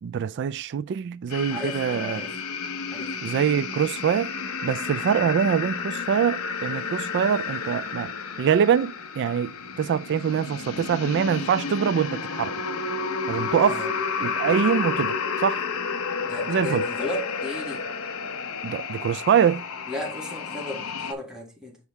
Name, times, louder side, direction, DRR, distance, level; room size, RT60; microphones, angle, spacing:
voice 1, 0.0-2.2 3.2-4.3 4.6-8.1 8.4-12.5 13.3-13.9 14.2-15.6 16.5-16.9 18.6-19.6, right 7 dB, 55° right, 0.3 m, -24 dB
sound 1, 1.3-21.1, left 5 dB, 70° left, 0.8 m, -31 dB
voice 2, 1.5-2.3 2.9-3.2 13.7-13.9 16.2-17.8 19.9-21.8, left 1 dB, 5° right, 1.9 m, -35 dB
7.1 x 4.7 x 3.2 m
head